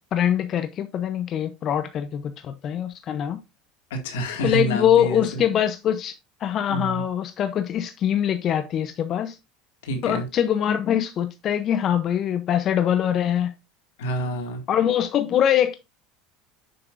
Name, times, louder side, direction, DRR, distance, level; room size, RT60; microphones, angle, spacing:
voice 1, 0.1-3.4 4.4-9.4 10.0-13.5 14.7-15.8, left 10 dB, 45° left, 0.7 m, -23 dB
voice 2, 3.9-5.4 6.7-7.0 9.8-10.3 14.0-14.6, right 1 dB, 85° left, 2.1 m, -28 dB
7.7 x 5.9 x 2.6 m
supercardioid pair, 95°, 0 cm